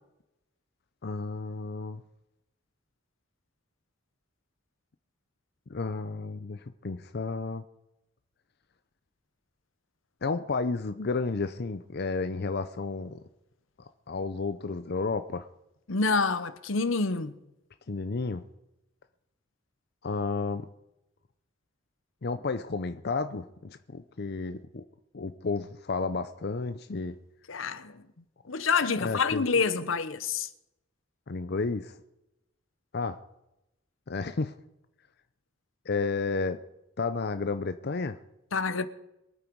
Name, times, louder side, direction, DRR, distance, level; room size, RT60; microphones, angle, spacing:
voice 1, 1.0-2.0 5.7-7.6 10.2-13.2 14.1-15.5 17.9-18.4 20.0-20.7 22.2-24.8 25.1-27.2 28.9-29.5 31.3-32.0 32.9-33.2 34.1-34.5 35.9-36.6 37.0-38.2, left 4 dB, 55° left, 0.6 m, -32 dB
voice 2, 15.9-17.3 27.5-28.0 28.5-30.5 38.5-38.9, left 4 dB, 80° left, 0.9 m, -27 dB
23.0 x 8.9 x 4.7 m
head